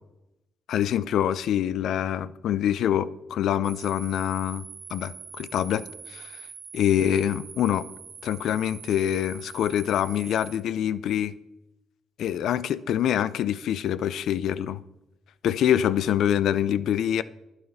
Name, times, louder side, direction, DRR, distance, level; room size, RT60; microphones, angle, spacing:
voice 1, 0.7-4.6 4.9-6.3 6.7-7.9 8.2-11.3 12.2-14.8 15.4-17.2, left 10 dB, 75° left, 0.5 m, -25 dB
sound 1, 3.6-10.6, right 6 dB, 50° right, 1.8 m, -44 dB
11.0 x 9.2 x 5.6 m
cardioid pair, 90°, 0 cm